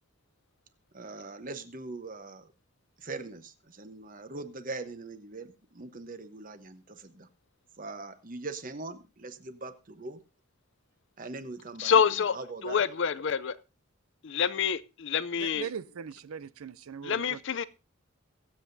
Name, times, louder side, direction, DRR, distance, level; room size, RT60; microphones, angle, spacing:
voice 1, 0.9-2.5 3.0-7.3 7.8-10.2 11.2-11.9 12.3-12.8, right 3 dB, 40° right, 1.0 m, -41 dB
voice 2, 11.8-13.6 14.2-15.7 17.0-17.6, left 7 dB, 55° left, 0.5 m, -27 dB
voice 3, 15.4-17.4, right 7 dB, 85° right, 0.5 m, -40 dB
22.5 x 7.8 x 2.7 m
head